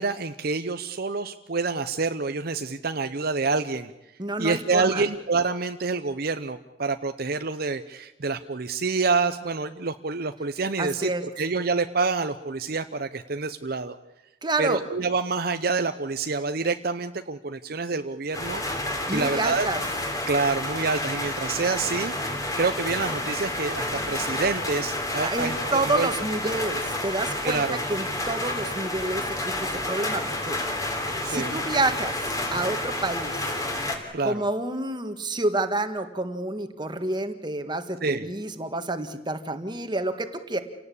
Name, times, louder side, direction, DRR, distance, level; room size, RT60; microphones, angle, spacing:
voice 1, 0.0-3.9 4.4-14.0 14.6-18.6 19.1-19.7 20.3-26.1 27.4-27.8 31.2-31.6 34.1-34.4 38.0-38.3, right 4 dB, 55° right, 9 dB, 0.8 m, -27 dB
voice 2, 4.2-5.1 10.8-11.2 14.4-14.8 19.1-19.8 25.2-27.6 27.9-29.5 29.9-30.6 31.3-33.5 34.2-40.6, right 2 dB, 25° right, 8 dB, 1.7 m, -28 dB
sound 1, 18.3-34.0, left 1 dB, 20° left, 3.4 m, -30 dB
28.5 x 18.0 x 8.5 m, 0.97 s
head